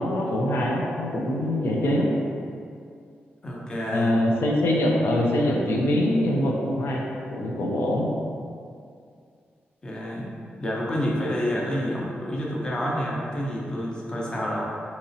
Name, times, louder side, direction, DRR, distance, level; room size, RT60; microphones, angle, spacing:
voice 1, 0.0-2.1 3.9-7.0 7.3-8.1, left 1 dB, 85° left, -1 dB, 0.5 m, -23 dB
voice 2, 3.4-4.1 9.8-10.3 10.6-14.6, equal, 20° left, -4 dB, 0.5 m, -28 dB
4.0 x 2.8 x 2.7 m, 2.3 s
wide cardioid pair, 175°, 4 cm